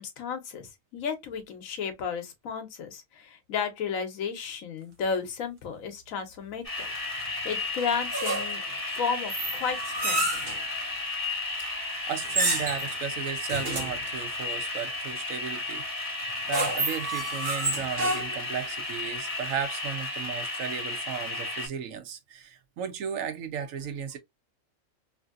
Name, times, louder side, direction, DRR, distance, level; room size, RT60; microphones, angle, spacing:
voice 1, 0.0-6.9 7.2-8.6 8.9-10.3, left 6 dB, 85° left, 1.2 m, -33 dB
sound 1, 6.6-21.7, left 2 dB, 25° left, 1.7 m, -34 dB
sound 2, 8.1-8.7 9.3-10.6 12.2-12.9 13.5-14.0 16.2-18.5, right 2 dB, 45° right, 1.2 m, -29 dB
voice 2, 12.1-15.8 16.5-24.2, right 7 dB, 80° right, 1.1 m, -35 dB
3.1 x 2.6 x 2.4 m
omnidirectional pair, 1.4 m